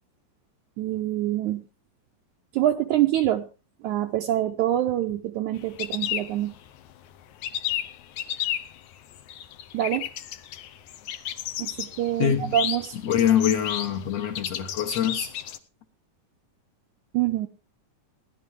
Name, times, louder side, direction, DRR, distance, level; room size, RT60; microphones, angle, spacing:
voice 1, 0.8-1.6 2.5-3.5 3.8-6.6 9.7-10.1 11.6-13.0 17.1-17.5, right 13 dB, 75° right, 4 dB, 1.9 m, -25 dB
sound 1, 5.6-6.9 7.2-15.6, left 11 dB, 70° left, 2.0 m, -33 dB
voice 2, 12.2-12.6 13.0-15.3, left 9 dB, 55° left, 1 dB, 2.3 m, -24 dB
18.0 x 11.0 x 3.5 m, 0.32 s
omnidirectional pair, 3.9 m